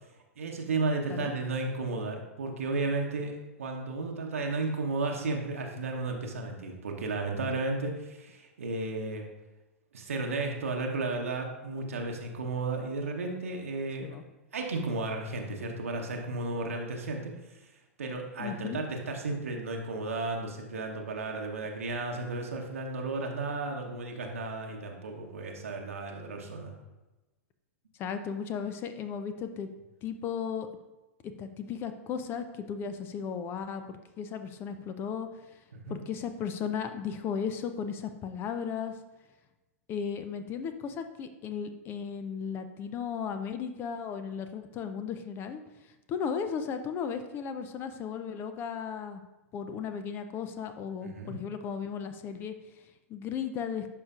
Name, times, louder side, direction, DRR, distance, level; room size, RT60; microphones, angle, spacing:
voice 1, 0.4-9.2 9.9-14.1 14.5-17.3 18.0-26.8 35.9-36.0 51.0-51.4, right 3 dB, 65° right, 1 dB, 1.0 m, -33 dB
voice 2, 18.4-18.8 28.0-29.7 30.0-30.7 31.4-35.3 35.9-38.9 39.9-45.6 46.1-49.2 49.5-52.5 53.1-53.9, left 7 dB, 30° left, 9 dB, 0.5 m, -35 dB
11.5 x 4.9 x 2.4 m, 1.1 s
figure-of-eight pair, 100°, 8 cm